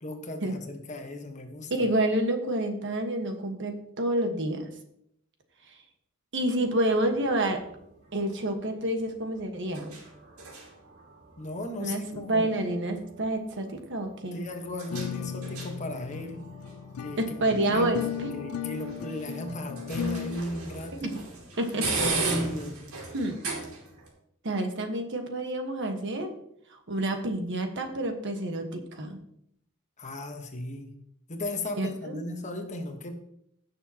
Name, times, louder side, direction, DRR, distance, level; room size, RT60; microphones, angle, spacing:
voice 1, 0.0-1.7 11.4-12.5 14.3-16.4 17.0-21.2 21.8-22.8 30.0-30.9 31.3-33.2, left 1 dB, 35° left, 5 dB, 1.2 m, -36 dB
voice 2, 1.7-4.7 5.7-5.8 6.3-7.6 8.1-9.9 11.8-14.4 17.2-18.3 21.0-21.2 21.6-21.9 23.1-23.4 24.4-26.3 26.7-29.2 31.8-32.2, right 1 dB, 60° right, 5 dB, 1.4 m, -28 dB
sound 1, 6.6-24.1, right 4 dB, 85° right, 2.8 m, -39 dB
sound 2, 14.9-20.4, left 9 dB, 80° left, 0.4 m, -36 dB
16.0 x 6.8 x 2.9 m, 0.73 s
head